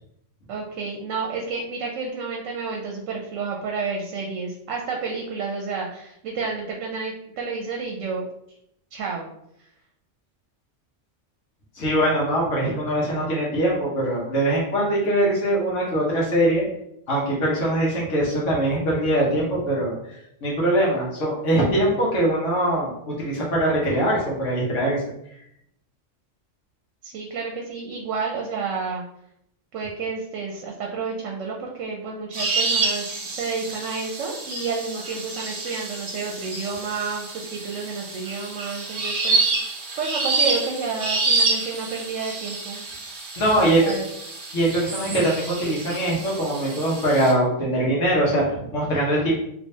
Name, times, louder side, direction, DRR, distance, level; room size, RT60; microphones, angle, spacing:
voice 1, 0.5-8.2 8.9-9.3 27.0-29.0 29.7-42.8 43.6-44.1, right 4 dB, 85° right, 0 dB, 0.9 m, -30 dB
voice 2, 11.7-16.6 17.1-25.0 43.4-43.8 44.5-49.3, right 1 dB, 75° left, -4 dB, 1.3 m, -22 dB
sound 1, 32.3-47.3, right 3 dB, 50° right, 0.8 m, -28 dB
3.3 x 2.9 x 2.7 m, 0.77 s
omnidirectional pair, 1.3 m